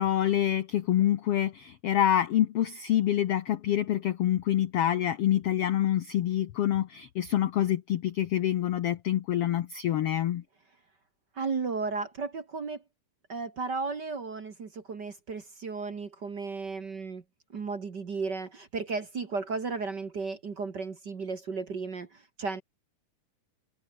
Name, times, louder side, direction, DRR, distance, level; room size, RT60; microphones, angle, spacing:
voice 1, 0.0-10.4, left 11 dB, 85° left, 1.3 m, -26 dB
voice 2, 11.4-12.8 13.3-17.2 17.5-22.1 22.4-22.6, right 4 dB, 40° right, 1.7 m, -34 dB
omnidirectional pair, 4.0 m